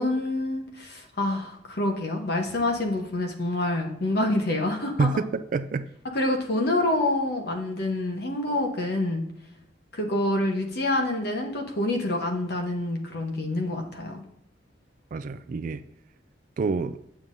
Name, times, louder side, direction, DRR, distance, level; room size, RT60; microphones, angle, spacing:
voice 1, 0.0-5.1 6.1-9.3 9.9-14.2, left 1 dB, 60° left, 1.0 m, -27 dB
voice 2, 5.0-5.9 15.1-15.8 16.6-17.0, right 4 dB, 45° right, 0.3 m, -27 dB
7.4 x 6.9 x 2.6 m
head